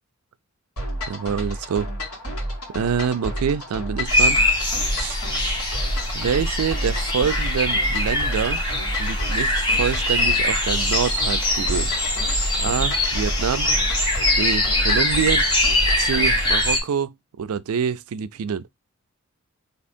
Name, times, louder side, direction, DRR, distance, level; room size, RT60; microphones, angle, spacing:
sound 1, 0.8-16.6, equal, 80° left, 1.8 m, -31 dB
voice 1, 1.1-1.9 2.7-4.4 5.0-5.2 6.1-8.6 9.0-11.9 12.6-13.7 14.4-15.4 16.0-18.6, right 7 dB, 80° right, 0.4 m, -26 dB
sound 2, 4.1-16.8, left 1 dB, 20° left, 2.1 m, -22 dB
3.5 x 2.9 x 4.2 m
head